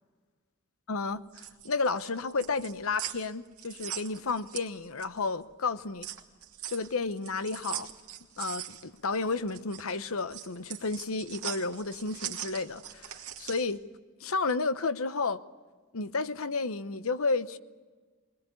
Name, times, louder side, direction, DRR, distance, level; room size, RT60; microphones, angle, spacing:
voice 1, 0.9-1.2 1.6-6.1 6.7-7.9 8.4-13.8 14.2-15.4 15.9-17.6, left 4 dB, 75° left, 0.9 m, -32 dB
sound 1, 1.1-5.3 5.6-13.7, right 11 dB, 85° right, 2.3 m, -41 dB
22.0 x 20.5 x 8.4 m
head